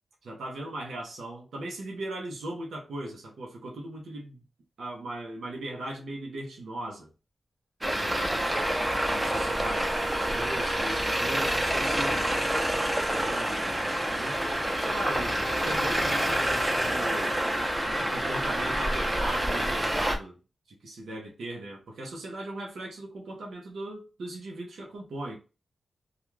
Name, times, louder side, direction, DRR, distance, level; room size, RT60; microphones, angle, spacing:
voice 1, 0.2-4.4 4.8-7.1 7.9-8.5 9.0-12.3 13.3-17.4 18.0-20.4 20.7-25.4, right 1 dB, 85° right, 0.8 m, -38 dB
Traffic noise roadway noise, 7.8-20.2, right 1 dB, 15° right, 0.6 m, -27 dB
Wind instrument woodwind instrument, 8.5-13.4, right 2 dB, 40° right, 1.3 m, -38 dB
2.4 x 2.4 x 3.1 m
cardioid pair, 65°, 0 cm